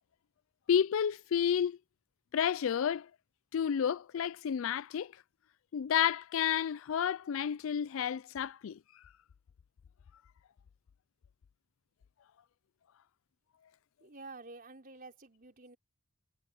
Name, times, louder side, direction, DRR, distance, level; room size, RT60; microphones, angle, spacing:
voice 1, 0.7-1.8 2.3-3.1 3.5-5.1 5.7-8.8, left 8 dB, 65° left, 0.4 m, -30 dB
voice 2, 14.0-15.8, right 3 dB, 45° right, 4.9 m, -50 dB
head